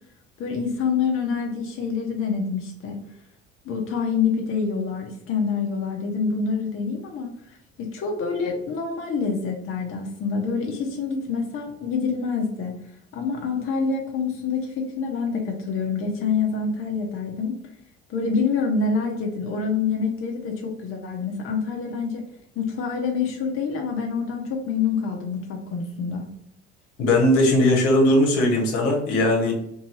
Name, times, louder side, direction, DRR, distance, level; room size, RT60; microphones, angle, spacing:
voice 1, 0.4-3.0 3.6-12.7 13.1-17.6 18.1-22.3 22.6-26.3, left 5 dB, 40° left, 1 dB, 0.6 m, -26 dB
voice 2, 27.0-29.5, left 1 dB, 65° left, 0 dB, 0.9 m, -19 dB
2.7 x 2.6 x 2.8 m, 0.77 s
figure-of-eight pair, 55°, 34 cm